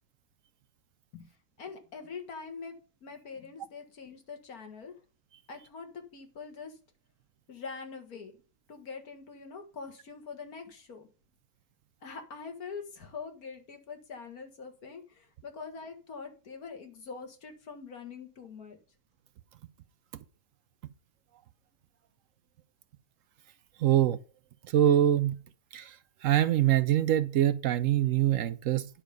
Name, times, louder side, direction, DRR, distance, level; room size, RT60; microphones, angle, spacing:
voice 1, 1.1-4.9 5.5-6.8 7.5-8.3 8.7-11.1 12.0-18.8, left 5 dB, 60° left, 2.2 m, -44 dB
voice 2, 23.8-24.2 24.7-25.4 25.7-25.9 26.2-28.9, right 11 dB, 70° right, 0.8 m, -24 dB
10.5 x 5.7 x 5.1 m
omnidirectional pair, 1.7 m